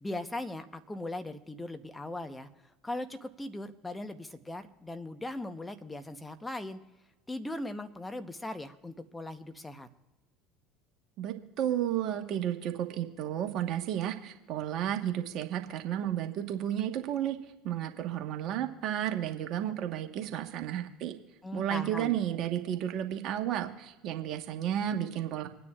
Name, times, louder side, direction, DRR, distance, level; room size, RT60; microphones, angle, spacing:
voice 1, 0.0-2.5 2.8-6.8 7.3-9.9 21.4-22.1, left 2 dB, 10° left, 8 dB, 1.0 m, -39 dB
voice 2, 11.2-17.4 17.6-21.1 21.5-25.5, right 11 dB, 55° right, 5 dB, 1.4 m, -32 dB
26.5 x 9.5 x 2.5 m, 1.1 s
hypercardioid pair, 70°, 0 cm